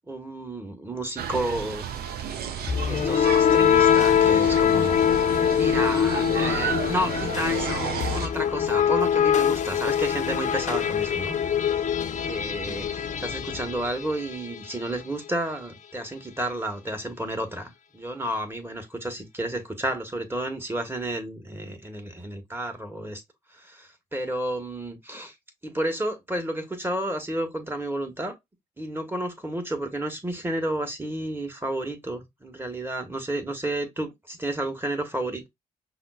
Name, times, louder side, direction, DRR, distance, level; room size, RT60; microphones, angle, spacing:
voice 1, 0.1-1.9 2.8-5.1 5.5-11.9 12.3-23.2 23.5-25.3 25.6-28.3 28.8-35.5, right 1 dB, 15° right, 1.2 m, -31 dB
sound 1, 1.2-8.3, right 7 dB, 65° right, 0.5 m, -32 dB
sound 2, 2.7-14.6, left 8 dB, 45° left, 0.6 m, -23 dB
5.5 x 2.0 x 2.3 m
hypercardioid pair, 40°, 17 cm